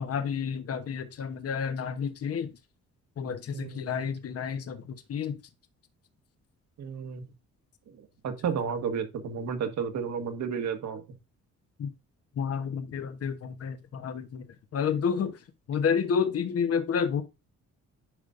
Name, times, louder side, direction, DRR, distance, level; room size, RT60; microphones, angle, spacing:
voice 1, 0.0-2.5 3.2-5.4 11.8-11.9 12.4-14.5 14.7-15.4 15.7-17.2, left 6 dB, 50° left, 1.1 m, -30 dB
voice 2, 3.5-4.0 6.8-7.2 7.9-11.0, right 6 dB, 65° right, 1.7 m, -32 dB
10.0 x 5.2 x 2.6 m
cardioid pair, 90°, 30 cm